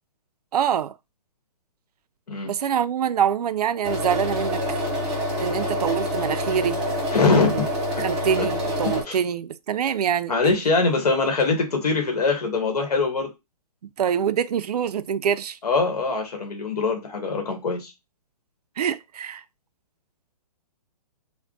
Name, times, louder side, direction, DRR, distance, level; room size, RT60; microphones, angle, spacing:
voice 1, 0.5-0.9 2.4-4.8 5.4-6.8 8.0-10.3 14.0-15.6 18.8-19.4, right 8 dB, 70° right, 0.4 m, -25 dB
sound 1, 3.8-9.0, equal, 5° right, 0.4 m, -27 dB
voice 2, 7.1-7.7 7.9-8.0 8.8-9.2 10.3-13.3 15.6-17.9, left 4 dB, 70° left, 1.4 m, -23 dB
3.4 x 2.2 x 3.7 m
hypercardioid pair, 170°, 21 cm